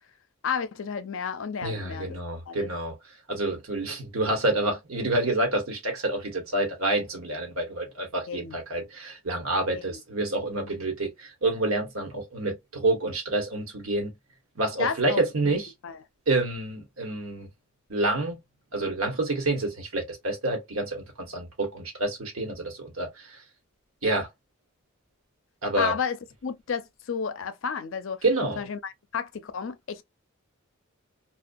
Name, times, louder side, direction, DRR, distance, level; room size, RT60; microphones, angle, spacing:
voice 1, 0.4-2.2 2.5-2.7 8.3-8.6 9.9-10.0 14.8-16.0 24.0-24.2 25.8-26.2 26.4-28.2 28.6-30.0, left 6 dB, 65° left, 0.4 m, -32 dB
voice 2, 1.6-2.9 3.3-14.1 14.5-15.7 16.3-17.5 17.9-18.4 18.7-23.4 24.0-24.3 25.6-26.0 28.2-28.6, right 2 dB, 85° right, 1.2 m, -28 dB
2.3 x 2.3 x 2.5 m
head